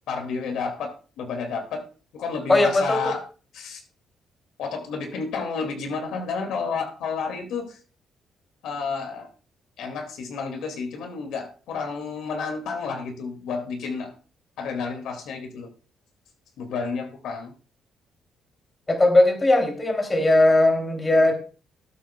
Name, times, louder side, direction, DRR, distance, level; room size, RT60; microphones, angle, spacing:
voice 1, 0.1-1.8 2.1-3.2 3.5-3.8 4.6-7.8 8.6-9.3 9.8-14.1 14.6-15.7 16.6-17.5, left 5 dB, 80° left, 5 dB, 2.2 m, -31 dB
voice 2, 2.5-3.0 18.9-21.3, left 2 dB, 25° left, 4 dB, 2.9 m, -18 dB
19.5 x 8.2 x 2.3 m, 0.35 s
cardioid pair, 90°, 0 cm